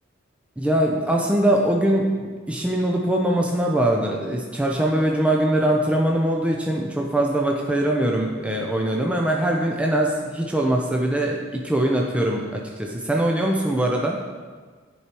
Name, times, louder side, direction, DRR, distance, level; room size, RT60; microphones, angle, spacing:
voice 1, 0.6-14.2, right 1 dB, 5° right, -1 dB, 0.4 m, -22 dB
9.7 x 4.7 x 2.9 m, 1.5 s
head